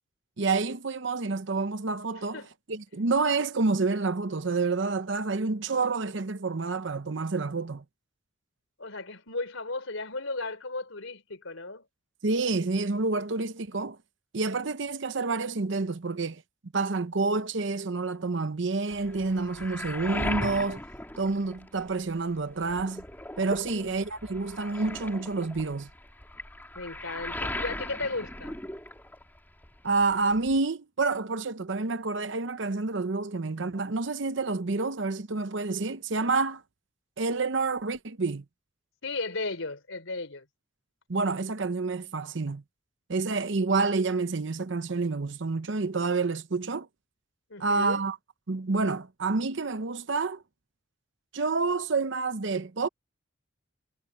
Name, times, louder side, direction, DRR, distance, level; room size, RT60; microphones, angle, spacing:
voice 1, 0.4-2.4 2.7-7.8 12.2-14.0 14.3-16.4 16.7-20.8 21.2-23.0 23.4-25.9 29.8-36.6 37.2-38.4 41.1-42.6 43.1-46.9 47.6-48.2 48.5-50.4 51.3-52.9, right 3 dB, 60° right, 0.8 m, -28 dB
voice 2, 8.8-11.9 23.6-23.9 26.8-28.6 39.0-40.5 47.5-48.0, left 3 dB, 75° left, 3.7 m, -35 dB
Waves surf, 18.9-22.1 22.4-29.4 29.6-30.6, left 1 dB, 10° left, 2.9 m, -38 dB
head